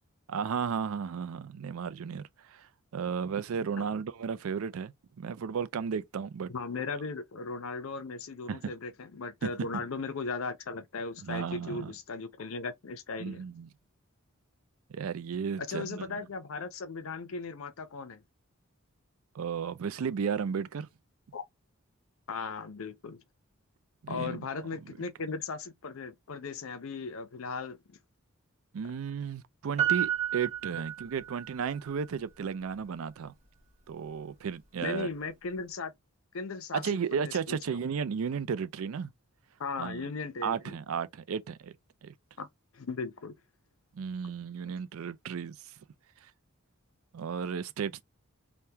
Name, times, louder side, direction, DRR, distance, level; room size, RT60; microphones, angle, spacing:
voice 1, 0.3-6.5 8.5-8.7 9.4-9.8 11.2-11.9 13.2-13.7 14.9-16.2 19.3-20.9 24.0-24.5 24.9-25.0 28.7-33.3 33.9-35.1 36.7-39.1 39.8-40.1 40.4-41.7 42.0-42.1 43.9-45.7 47.1-48.0, right 6 dB, 75° right, 0.4 m, -34 dB
voice 2, 6.5-13.4 15.6-18.2 21.3-21.4 22.3-23.2 24.1-28.0 34.8-35.9 36.3-37.8 39.6-40.7 42.4-42.5 42.7-43.3, left 4 dB, 75° left, 0.6 m, -37 dB
Piano, 29.8-31.6 31.9-32.0, right 10 dB, 30° right, 1.5 m, -31 dB
3.4 x 2.2 x 2.8 m
head